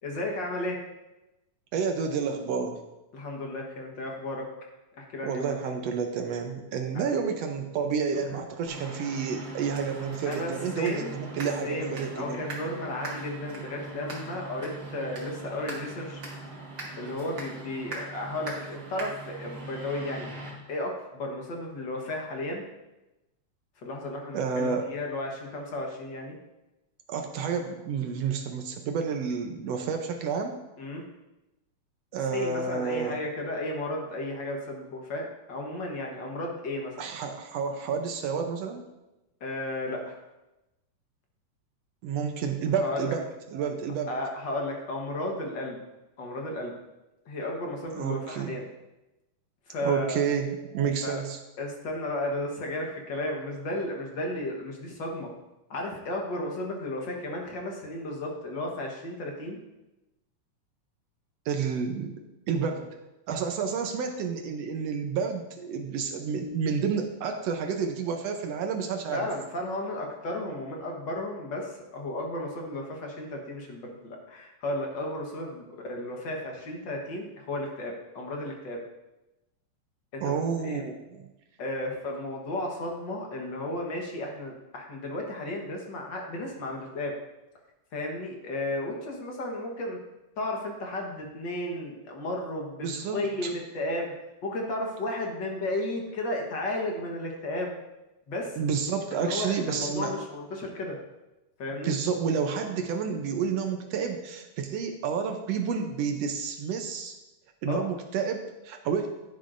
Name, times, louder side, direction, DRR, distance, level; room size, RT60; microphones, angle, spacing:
voice 1, 0.0-0.8 3.1-4.4 5.0-5.5 8.3-8.4 10.2-11.2 11.6-16.2 17.0-20.3 20.7-22.6 23.8-26.3 30.8-31.0 32.3-36.9 39.4-40.2 42.8-43.1 44.1-45.8 46.2-46.7 47.3-48.6 49.7-50.2 51.0-51.2 51.6-55.3 55.7-59.6 69.1-78.8 80.1-80.9 81.6-87.1 87.9-90.0 90.4-93.5 93.7-94.1 94.4-97.8 98.3-98.6 99.1-101.0 101.6-101.9 107.7-107.8, left 1 dB, 55° left, 0 dB, 1.3 m, -34 dB
voice 2, 1.7-2.8 5.2-12.4 24.3-24.9 27.1-30.6 32.1-33.2 37.0-38.8 42.0-43.3 43.5-44.1 47.9-48.6 49.8-51.4 61.4-62.2 62.5-62.9 63.3-69.3 80.2-81.3 92.8-93.5 98.6-100.2 101.8-107.2 107.6-109.1, right 6 dB, 75° right, 4 dB, 1.5 m, -30 dB
sound 1, 8.7-20.5, right 2 dB, 40° right, 2.2 m, -40 dB
11.0 x 10.5 x 2.6 m, 0.98 s
omnidirectional pair, 3.6 m